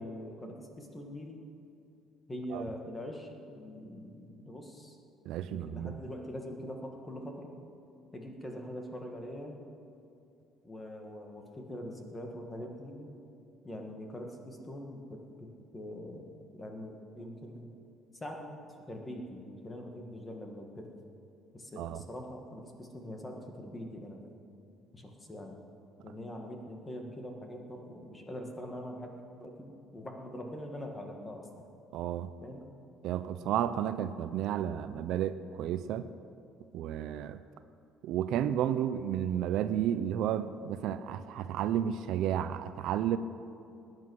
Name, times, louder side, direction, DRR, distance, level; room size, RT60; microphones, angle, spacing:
voice 1, 0.0-1.4 2.3-5.0 5.5-7.5 8.1-9.6 10.6-13.1 13.6-17.7 18.1-18.6 18.9-20.9 21.5-24.2 24.9-25.6 26.0-31.6 32.4-32.7, left 1 dB, 15° left, 2 dB, 1.6 m, -43 dB
voice 2, 5.3-6.0 21.8-22.0 31.9-32.3 33.0-36.1 36.7-37.4 38.0-43.2, right 10 dB, 60° right, 12 dB, 0.5 m, -32 dB
19.5 x 9.6 x 6.3 m, 2.6 s
cardioid pair, 165°, 0 cm